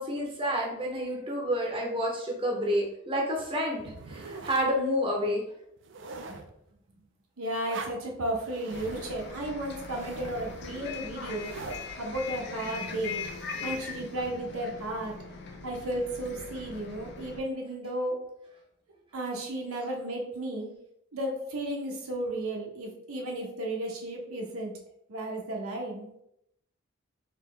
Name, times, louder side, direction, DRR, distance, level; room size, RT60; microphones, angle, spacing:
voice 1, 0.0-5.4, equal, 25° right, -1 dB, 0.7 m, -29 dB
sound 1, 3.8-4.7 5.3-5.4 5.8-6.5 7.6-8.0 8.4-11.9, right 3 dB, 55° right, 0.4 m, -43 dB
voice 2, 7.4-11.5 12.0-13.2 13.6-15.1 15.6-18.1 19.1-20.7 21.1-24.7 25.1-26.1, right 1 dB, 80° right, 0 dB, 0.9 m, -34 dB
Bus, 8.7-17.4, left 4 dB, 50° left, 0.5 m, -41 dB
4.1 x 2.8 x 3.3 m, 0.78 s
head